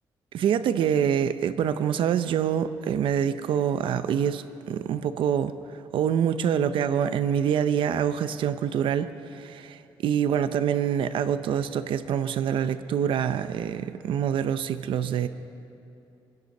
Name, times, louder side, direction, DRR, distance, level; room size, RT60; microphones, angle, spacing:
voice 1, 0.3-5.5 5.9-15.3, right 8 dB, 75° right, 11 dB, 0.7 m, -26 dB
24.0 x 11.0 x 5.4 m, 2.7 s
cardioid pair, 150°, 9 cm